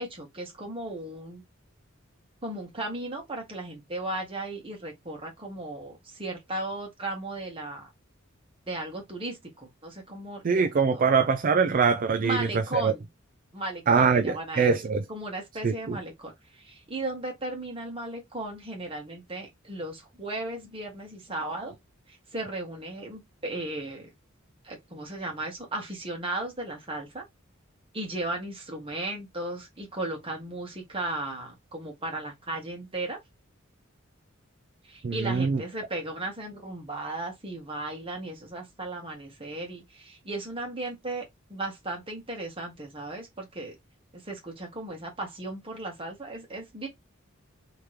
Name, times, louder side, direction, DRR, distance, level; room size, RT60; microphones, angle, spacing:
voice 1, 0.0-1.4 2.4-7.9 8.7-10.4 10.7-11.1 12.2-13.1 13.5-14.7 15.1-21.7 22.1-24.1 24.6-27.2 27.9-33.2 34.8-43.8 44.2-46.9, right 2 dB, 25° right, 1.6 m, -36 dB
voice 2, 10.4-12.9 13.9-15.0 15.6-16.0 35.0-35.6, right 5 dB, 45° right, 0.4 m, -23 dB
3.4 x 3.0 x 3.2 m
head